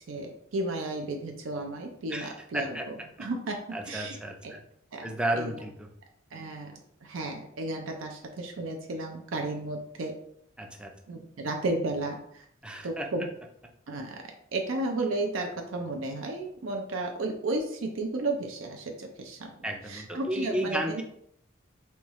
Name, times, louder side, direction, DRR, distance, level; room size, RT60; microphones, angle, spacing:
voice 1, 0.1-3.6 3.9-4.5 4.9-5.1 5.3-5.5 6.3-10.1 11.1-12.5 12.8-13.3 13.9-14.2 14.5-19.5 19.9-21.0, right 2 dB, 70° right, 3 dB, 0.5 m, -33 dB
voice 2, 2.1-2.9 3.7-4.6 5.0-5.9 10.6-10.9 12.6-13.1 19.6-21.0, right 1 dB, 5° right, 3 dB, 0.4 m, -33 dB
4.3 x 2.3 x 3.0 m, 0.70 s
head